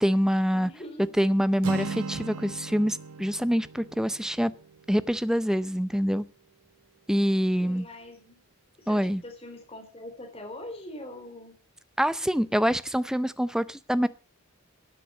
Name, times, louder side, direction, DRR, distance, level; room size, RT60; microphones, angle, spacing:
voice 1, 0.0-0.7 1.2-4.5 4.9-6.2 7.1-7.9 8.9-9.2 12.0-14.1, equal, 5° right, 0.6 m, -25 dB
voice 2, 0.5-1.3 7.6-8.4 8.8-11.5, left 1 dB, 25° left, 3.9 m, -43 dB
Acoustic guitar, 1.6-5.6, right 4 dB, 75° right, 0.7 m, -37 dB
13.5 x 9.2 x 8.1 m
head